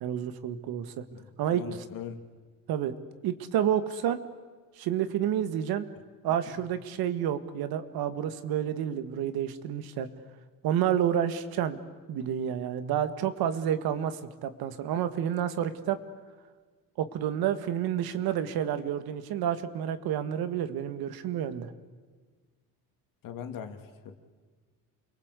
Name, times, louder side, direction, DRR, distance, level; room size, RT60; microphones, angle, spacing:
voice 1, 0.0-1.0 1.4-1.6 2.7-2.9 3.2-4.2 4.8-5.9 6.2-10.1 10.6-11.8 12.1-16.0 17.0-21.7, right 10 dB, 80° right, 11 dB, 1.9 m, -29 dB
voice 2, 1.1-2.2 6.5-6.6 23.2-24.2, left 8 dB, 65° left, 6 dB, 2.8 m, -41 dB
29.0 x 23.0 x 8.3 m, 1.5 s
cardioid pair, 130°, 36 cm